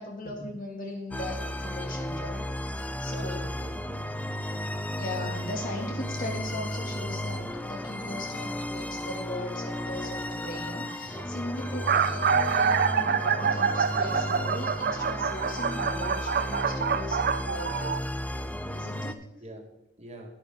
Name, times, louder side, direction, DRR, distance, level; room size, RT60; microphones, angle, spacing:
voice 1, 0.0-3.4 5.0-18.0 18.7-19.3, left 1 dB, 50° left, 1 dB, 2.9 m, -38 dB
sound 1, 1.1-19.1, left 1 dB, 10° left, 0.6 m, -34 dB
voice 2, 3.1-3.8 19.4-20.3, right 1 dB, 35° right, 2 dB, 1.9 m, -45 dB
sound 2, 9.8-10.1 10.9-11.0 11.2-11.3 11.6-18.0, right 6 dB, 55° right, 0.5 m, -26 dB
11.5 x 10.5 x 3.9 m, 0.91 s
head